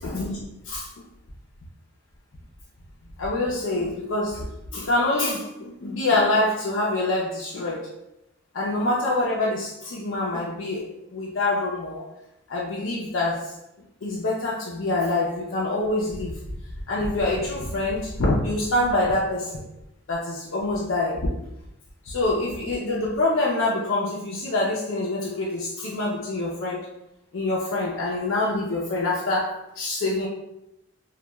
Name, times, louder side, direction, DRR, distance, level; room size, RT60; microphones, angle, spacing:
voice 1, 0.0-0.9 3.2-7.9 8.5-12.0 12.5-13.5 14.0-16.4 16.9-19.6 20.1-21.3 22.0-26.9 27.3-30.3, left 2 dB, 70° left, -5 dB, 0.5 m, -25 dB
2.9 x 2.2 x 2.2 m, 0.87 s
head